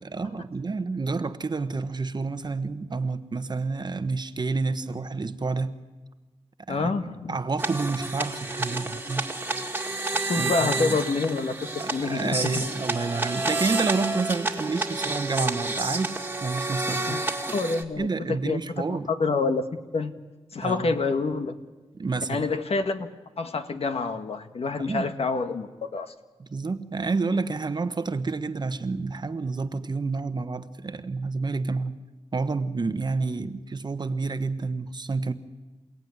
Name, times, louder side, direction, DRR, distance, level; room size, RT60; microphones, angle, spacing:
voice 1, 0.0-5.8 6.7-6.9 7.3-9.3 10.4-11.0 11.8-16.2 16.4-17.3 18.0-19.1 20.6-21.0 22.0-22.4 24.8-25.0 26.4-32.0 32.3-35.3, right 4 dB, 40° right, 11 dB, 1.1 m, -29 dB
voice 2, 6.7-7.4 10.3-12.6 17.1-17.2 17.5-18.6 18.9-19.7 19.9-20.1 20.5-21.5 22.3-23.1 23.4-26.1, left 4 dB, 60° left, 8 dB, 1.5 m, -27 dB
sound 1, 7.6-17.8, right 2 dB, 15° right, 2.0 m, -30 dB
28.5 x 16.5 x 9.6 m, 1.3 s
wide cardioid pair, 95°, 11 cm